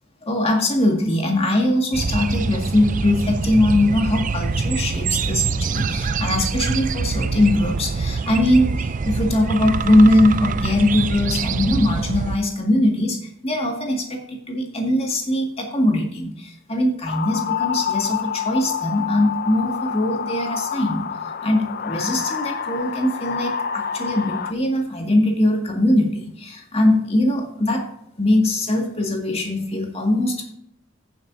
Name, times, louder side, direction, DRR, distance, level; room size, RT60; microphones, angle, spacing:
voice 1, 0.2-27.9 28.2-30.5, left 1 dB, 30° left, 1 dB, 2.0 m, -21 dB
sound 1, 1.9-12.4, right 4 dB, 40° right, 0.4 m, -24 dB
sound 2, 17.1-24.5, left 7 dB, 50° left, 0.6 m, -27 dB
15.5 x 7.3 x 2.7 m, 0.69 s
head